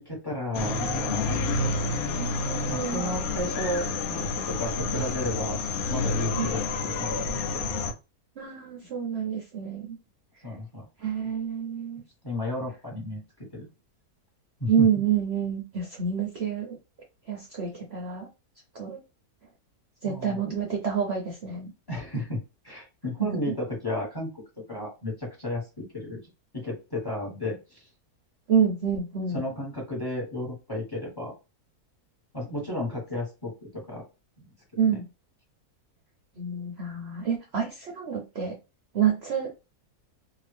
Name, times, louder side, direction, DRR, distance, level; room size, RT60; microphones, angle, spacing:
voice 1, 0.0-1.4 2.7-5.6 5.9-7.7 10.4-11.1 12.2-13.2 13.5-13.7 14.6-14.7 20.0-20.4 21.9-22.4 22.6-24.3 24.7-26.2 26.5-27.8 29.3-31.3 32.3-34.0 34.7-35.0, left 1 dB, 15° left, -3 dB, 1.5 m, -33 dB
sound 1, 0.5-7.9, left 3 dB, 70° left, 1.0 m, -29 dB
voice 2, 2.2-3.0 6.4-6.5 8.4-10.0 11.0-12.0 14.7-16.8 17.3-18.3 18.7-19.0 20.0-21.7 23.2-23.5 28.5-29.4 34.8-35.0 36.4-38.5 38.9-39.5, right 7 dB, 50° right, 0 dB, 0.8 m, -28 dB
2.8 x 2.6 x 3.3 m, 0.28 s
omnidirectional pair, 1.6 m